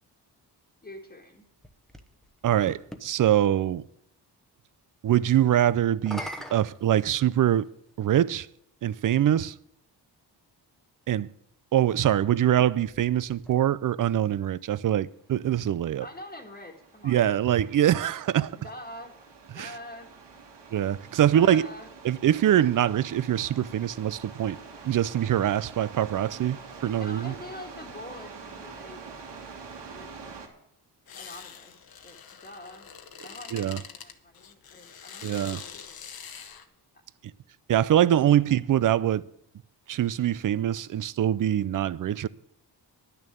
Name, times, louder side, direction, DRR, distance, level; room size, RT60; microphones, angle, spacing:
voice 1, 0.8-1.5 16.0-17.2 18.6-19.1 19.5-20.1 21.3-21.9 27.0-29.0 29.9-30.5 31.2-32.9 33.2-36.0, left 1 dB, 20° left, 1.7 m, -45 dB
sound 1, 1.2-3.1 5.9-7.7 8.6-8.7 12.4-14.0, equal, ahead, 1.0 m, -43 dB
voice 2, 2.4-3.8 5.0-7.7 8.0-8.5 8.8-9.5 11.1-11.3 11.7-16.0 17.0-18.6 19.5-19.7 20.7-21.7 22.0-24.6 24.8-26.6 26.8-27.3 33.5-33.8 35.2-35.6 37.7-39.2 39.9-42.3, right 11 dB, 50° right, 0.5 m, -24 dB
sound 2, 15.4-30.5, right 5 dB, 80° right, 2.5 m, -46 dB
sound 3, 31.1-36.7, left 7 dB, 60° left, 1.2 m, -44 dB
10.5 x 6.8 x 9.0 m
wide cardioid pair, 125°, 42 cm